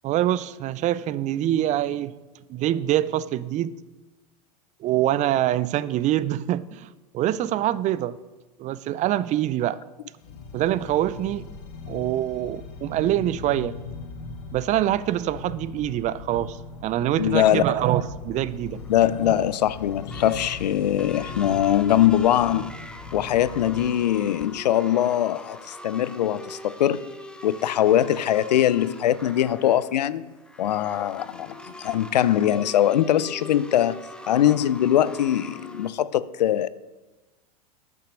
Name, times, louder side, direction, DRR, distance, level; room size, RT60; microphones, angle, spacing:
voice 1, 0.0-2.1 2.5-3.7 4.8-8.2 8.6-9.8 10.5-11.5 11.9-13.8 14.5-16.6 16.8-18.8 19.3-19.4, right 13 dB, 35° right, 0.4 m, -25 dB
sound 1, 10.2-23.9, left 4 dB, 75° left, 1.4 m, -40 dB
voice 2, 17.2-17.8 18.9-22.7 23.1-27.1 27.4-30.2 30.6-34.0 34.3-36.7, left 11 dB, 90° left, 0.5 m, -22 dB
sound 2, 18.7-35.9, left 1 dB, 5° left, 0.8 m, -43 dB
10.5 x 5.8 x 6.3 m
hypercardioid pair, 100°, 21 cm